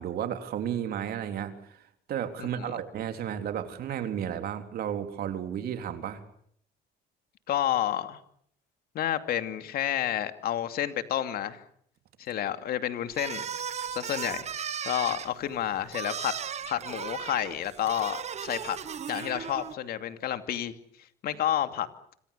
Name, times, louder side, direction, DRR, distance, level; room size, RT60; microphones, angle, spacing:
voice 1, 0.0-6.2, right 9 dB, 65° right, 7 dB, 3.6 m, -33 dB
voice 2, 2.4-2.8 7.5-8.2 8.9-11.6 12.2-13.4 13.9-14.5 14.8-16.3 16.7-18.8 19.1-20.7 21.2-21.9, left 11 dB, 65° left, 9 dB, 2.5 m, -30 dB
sound 1, 13.1-19.7, right 8 dB, 40° right, 1.3 m, -36 dB
26.5 x 26.0 x 6.9 m, 0.66 s
cardioid pair, 110°, 17 cm